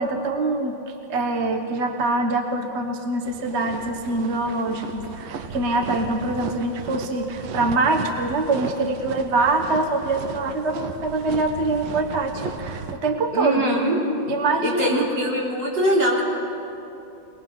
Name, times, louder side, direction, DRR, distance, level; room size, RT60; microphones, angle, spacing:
voice 1, 0.0-13.8 14.3-15.0, right 2 dB, 40° right, 4 dB, 1.2 m, -24 dB
sound 1, 3.3-13.0, right 5 dB, 80° right, 1.6 m, -35 dB
voice 2, 13.3-14.0 14.6-16.2, equal, 65° right, -4 dB, 4.2 m, -22 dB
23.0 x 19.5 x 5.8 m, 2.9 s
omnidirectional pair, 2.1 m